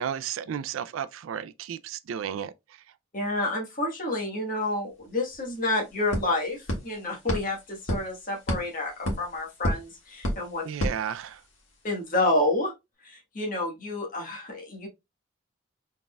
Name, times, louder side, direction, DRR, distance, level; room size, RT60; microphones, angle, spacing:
voice 1, 0.0-2.5 10.6-11.4, right 8 dB, 85° right, 0.3 m, -33 dB
voice 2, 3.1-10.6 11.8-12.7 13.0-14.9, left 2 dB, 45° left, 1.3 m, -29 dB
sound 1, 5.0-5.1 5.3-11.7, equal, 80° left, 1.6 m, -33 dB
4.0 x 3.6 x 2.2 m
head